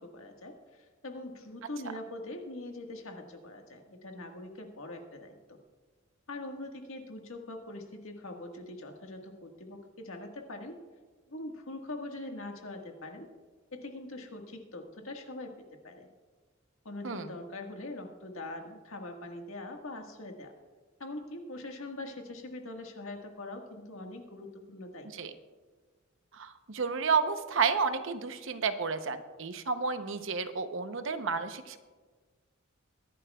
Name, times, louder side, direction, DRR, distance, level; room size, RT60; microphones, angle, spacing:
voice 1, 0.0-5.6 6.3-10.8 11.3-13.3 13.7-16.1 16.8-20.5 21.0-25.3, left 2 dB, 90° left, 3 dB, 1.6 m, -43 dB
voice 2, 26.3-31.8, right 5 dB, 65° right, 9 dB, 0.8 m, -31 dB
22.5 x 11.0 x 2.3 m, 1.4 s
head